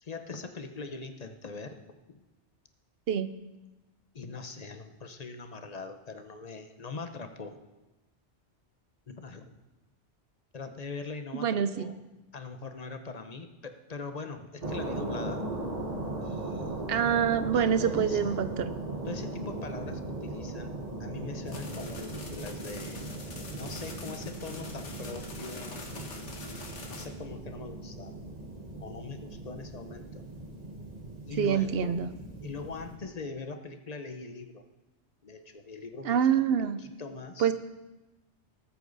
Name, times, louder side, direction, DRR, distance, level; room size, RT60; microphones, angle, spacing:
voice 1, 0.0-2.2 4.1-7.6 9.1-9.6 10.5-11.9 12.3-15.4 16.2-16.7 17.5-18.5 19.0-20.7 21.0-23.0 23.6-25.8 26.9-28.1 28.8-30.2 31.2-32.0 32.4-34.7 35.2-36.2 36.6-37.5, left 4 dB, 40° left, 7 dB, 0.9 m, -41 dB
voice 2, 11.3-12.0 16.9-18.5 31.4-32.1 36.0-36.8 37.4-37.5, right 8 dB, 60° right, 12 dB, 0.9 m, -26 dB
sound 1, 14.6-33.0, right 2 dB, 35° right, 1.6 m, -38 dB
sound 2, 21.5-27.1, left 3 dB, 75° left, 1.7 m, -45 dB
19.0 x 8.4 x 4.0 m, 1.1 s
omnidirectional pair, 1.2 m